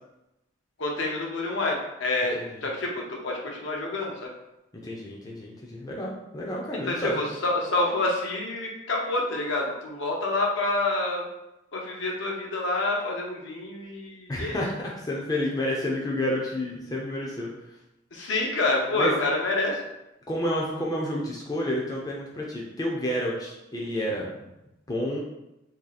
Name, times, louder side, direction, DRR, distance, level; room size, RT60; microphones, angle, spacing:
voice 1, 0.8-4.3 6.9-11.2 11.7-14.6 18.1-19.8, left 2 dB, 75° left, -1 dB, 0.7 m, -27 dB
voice 2, 2.3-2.7 4.8-7.2 14.3-17.7 18.9-19.1 20.3-24.5 24.9-25.2, left 1 dB, 20° left, -3 dB, 0.4 m, -30 dB
2.8 x 2.7 x 3.9 m, 0.92 s
head